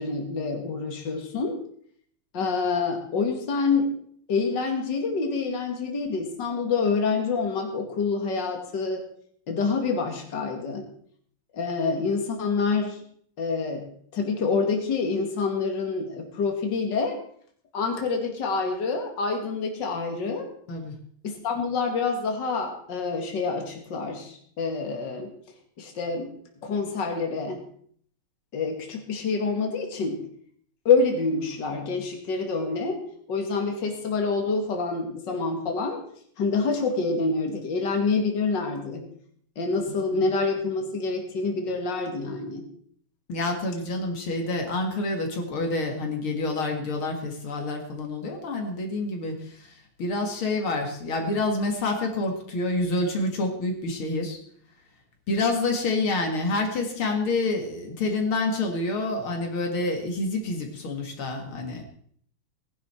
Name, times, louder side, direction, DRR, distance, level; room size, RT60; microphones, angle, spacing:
voice 1, 0.0-1.6 2.3-4.0 4.3-9.0 9.5-10.8 11.5-13.0 13.4-13.9 14.1-17.2 17.7-20.5 21.2-25.3 25.8-26.3 26.6-27.6 28.5-30.2 30.8-33.0 33.3-36.0 36.4-39.1 39.6-42.7, left 4 dB, 55° left, 3 dB, 2.7 m, -27 dB
voice 2, 43.3-54.4 55.3-61.8, left 2 dB, 80° left, 2 dB, 2.8 m, -28 dB
18.5 x 11.0 x 4.4 m, 0.62 s
omnidirectional pair, 2.3 m